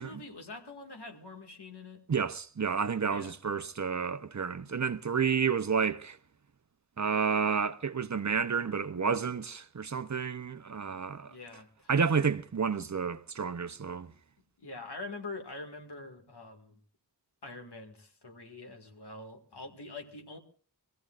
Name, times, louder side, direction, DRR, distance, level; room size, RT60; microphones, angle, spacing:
voice 1, 0.0-2.0 3.1-3.4 11.2-11.9 14.6-16.8 17.4-20.4, left 3 dB, 85° left, 2.1 m, -45 dB
voice 2, 2.1-6.2 7.0-11.3 11.9-14.1, right 6 dB, 45° right, 0.7 m, -30 dB
25.0 x 15.5 x 2.5 m
wide cardioid pair, 60°, 39 cm